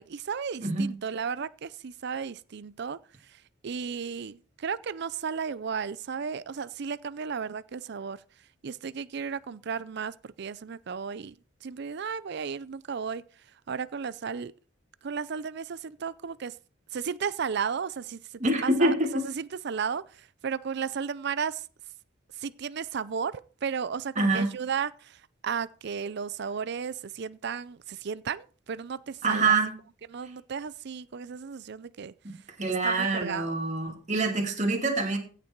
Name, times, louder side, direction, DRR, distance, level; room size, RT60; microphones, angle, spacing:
voice 1, 0.0-3.0 3.6-8.2 8.6-11.3 11.6-13.2 13.7-14.5 15.0-16.5 16.9-18.2 18.6-18.9 19.2-20.0 20.4-21.6 22.4-25.1 25.4-29.6 30.1-32.1 32.8-33.5, right 6 dB, 60° right, 0.5 m, -34 dB
voice 2, 0.6-0.9 18.4-19.2 24.2-24.5 29.2-29.7 32.2-35.2, right 2 dB, 40° right, 2.6 m, -26 dB
16.0 x 6.7 x 4.5 m
head